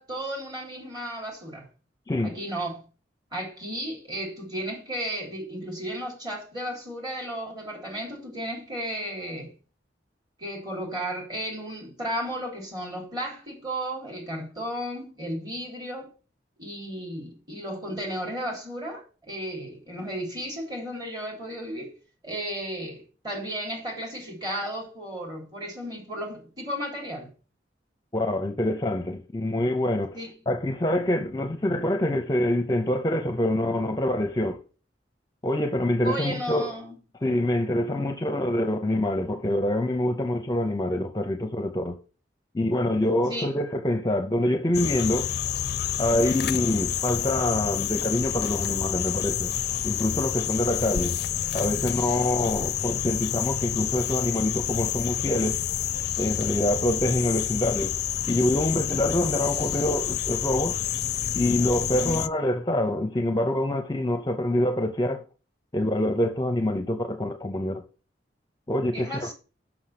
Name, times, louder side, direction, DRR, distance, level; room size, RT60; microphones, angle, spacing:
voice 1, 0.0-1.7 2.2-2.8 3.3-9.5 10.4-16.1 16.6-21.9 22.2-27.3 30.1-30.4 36.0-37.0 37.9-38.1 43.3-43.5 46.1-46.4 61.9-62.2 68.9-69.3, right 1 dB, 25° right, 3.4 m, -34 dB
voice 2, 28.1-30.2 30.5-34.6 35.4-36.7 37.2-42.0 42.5-45.3 46.0-49.5 49.8-51.2 51.5-55.6 56.2-57.9 58.3-60.8 61.3-65.2 65.7-67.8 68.7-69.3, left 1 dB, 20° left, 0.7 m, -25 dB
sound 1, 44.7-62.3, left 10 dB, 65° left, 0.4 m, -29 dB
6.3 x 6.1 x 5.9 m
head